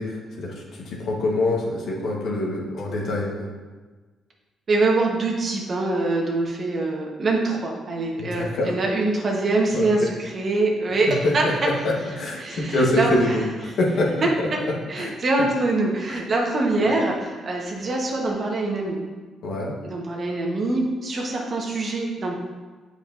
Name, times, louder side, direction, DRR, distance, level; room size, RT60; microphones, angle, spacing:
voice 1, 0.0-3.5 8.2-8.7 9.7-9.9 11.2-11.5 11.8-14.1 14.4-14.5 15.0-15.1 16.1-16.2 16.8-16.9 19.4-19.7, left 1 dB, 70° left, -2 dB, 1.3 m, -25 dB
voice 2, 4.7-11.4 12.4-13.3 14.2-14.6 14.9-19.0 19.8-22.3, right 2 dB, 45° right, -1 dB, 1.2 m, -24 dB
7.7 x 4.8 x 2.6 m, 1.3 s
cardioid pair, 90°, 0 cm